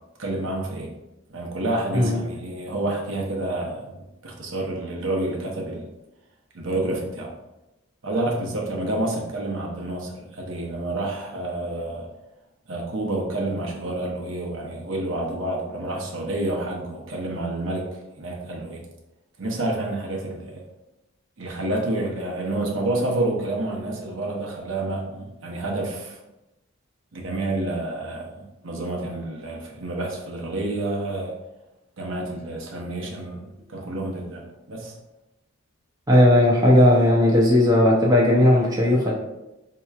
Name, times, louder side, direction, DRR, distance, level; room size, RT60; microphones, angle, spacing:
voice 1, 0.2-0.9 1.3-3.9 4.2-5.9 6.5-7.3 8.0-12.1 12.7-17.8 18.2-18.8 19.4-20.6 21.4-26.2 27.1-31.3 32.0-34.9, right 2 dB, 70° right, -1 dB, 0.8 m, -29 dB
voice 2, 36.1-39.1, left 1 dB, 20° right, -3 dB, 0.5 m, -16 dB
4.4 x 2.9 x 2.3 m, 0.96 s
head